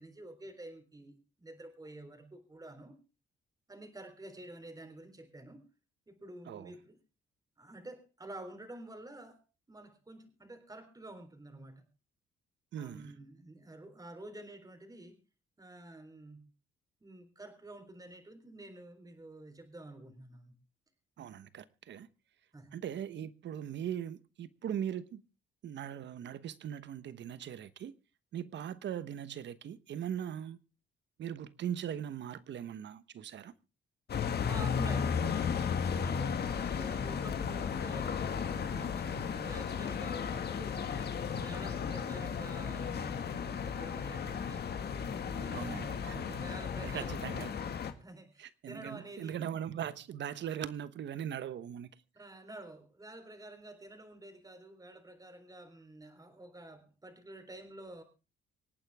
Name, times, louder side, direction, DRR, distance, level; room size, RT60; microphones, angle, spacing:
voice 1, 0.0-2.9 3.7-5.6 6.1-7.0 7.6-11.9 12.8-15.2 15.6-16.5 17.0-20.5 22.5-22.7 34.4-35.5 35.8-38.2 38.6-44.6 45.1-47.3 48.0-49.4 52.2-58.0, right 1 dB, 20° right, 3.9 m, -49 dB
voice 2, 12.7-13.1 21.2-22.1 22.7-25.2 25.6-27.9 28.3-30.6 31.2-33.5 45.5-46.4 46.8-47.5 48.4-51.9, right 9 dB, 65° right, 1.1 m, -40 dB
sound 1, 34.1-47.9, left 7 dB, 55° left, 1.9 m, -35 dB
26.0 x 9.1 x 3.6 m
cardioid pair, 90°, 20 cm